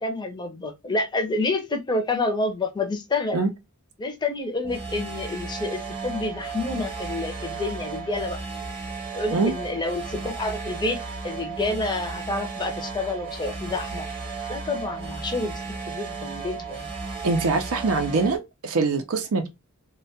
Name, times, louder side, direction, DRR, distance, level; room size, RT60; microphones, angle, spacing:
voice 1, 0.0-3.4 4.0-8.4 9.1-11.0 11.2-14.1 14.5-15.6 15.9-16.9, left 2 dB, 20° left, 0.5 m, -28 dB
sound 1, 4.6-18.4, right 4 dB, 25° right, 0.9 m, -34 dB
voice 2, 17.2-19.5, right 3 dB, 85° right, 0.5 m, -23 dB
2.2 x 2.2 x 2.6 m
head